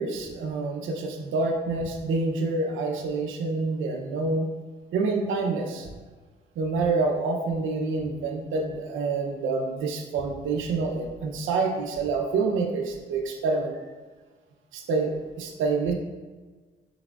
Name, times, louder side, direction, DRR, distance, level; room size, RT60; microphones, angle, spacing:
voice 1, 0.0-4.5 4.9-5.9 6.6-13.8 14.7-15.9, right 3 dB, 80° right, 2 dB, 0.7 m, -27 dB
6.0 x 3.5 x 2.4 m, 1.3 s
cardioid pair, 90°, 20 cm